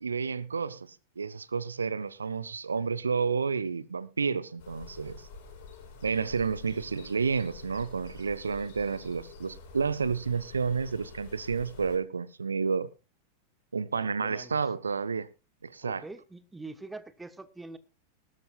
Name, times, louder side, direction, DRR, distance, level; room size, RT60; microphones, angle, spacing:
voice 1, 0.0-5.3 6.0-12.9 13.7-15.3 15.6-16.0, right 5 dB, 75° right, 0.7 m, -30 dB
sound 1, 4.6-12.0, left 4 dB, 50° left, 6.8 m, -48 dB
voice 2, 13.9-14.6 15.8-17.8, right 3 dB, 10° right, 1.2 m, -44 dB
19.0 x 12.5 x 2.4 m
figure-of-eight pair, 90°, 0 cm